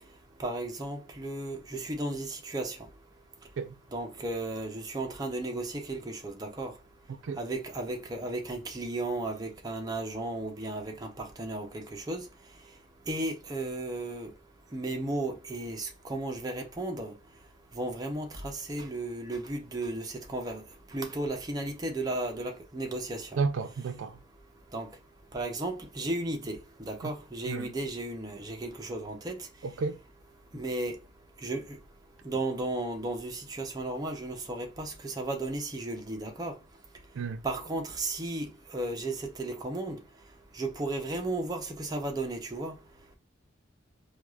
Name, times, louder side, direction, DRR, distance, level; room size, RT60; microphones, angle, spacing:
voice 1, 0.4-2.8 3.9-6.7 7.4-12.3 13.1-14.3 14.7-17.1 17.7-20.6 20.9-23.4 24.7-24.9 25.3-29.5 30.5-31.0 31.4-31.8 32.2-36.6 37.4-40.0 40.5-42.8, right 2 dB, 20° right, 0.6 m, -34 dB
voice 2, 23.4-24.2 27.5-27.7 29.6-30.0 37.2-37.4, right 4 dB, 80° right, 0.4 m, -32 dB
4.6 x 2.3 x 2.3 m
head